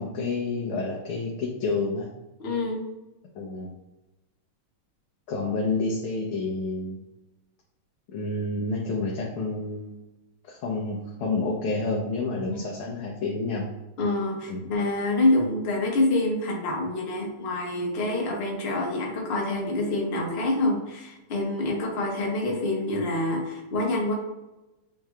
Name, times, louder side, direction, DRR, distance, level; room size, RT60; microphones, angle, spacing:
voice 1, 0.0-2.1 3.3-3.7 5.3-7.0 8.1-9.9 10.5-13.6 14.5-14.6, left 3 dB, 75° left, -3 dB, 1.6 m, -29 dB
voice 2, 2.4-2.8 12.5-12.6 14.0-24.1, left 2 dB, 40° left, -2 dB, 0.9 m, -26 dB
7.3 x 3.3 x 2.2 m, 1.0 s
omnidirectional pair, 2.4 m